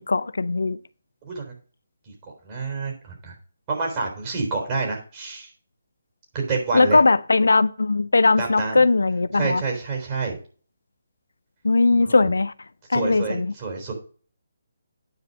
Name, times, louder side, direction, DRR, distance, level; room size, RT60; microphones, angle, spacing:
voice 1, 0.1-0.8 6.7-9.6 11.6-12.5 12.9-13.5, left 3 dB, 70° left, 0.4 m, -19 dB
voice 2, 1.2-1.5 2.4-3.4 3.7-5.5 6.3-7.0 8.4-8.8 9.3-10.4 12.0-12.3 12.9-13.9, right 4 dB, 30° right, 3.8 m, -28 dB
9.3 x 5.0 x 5.4 m
figure-of-eight pair, 145°, 0 cm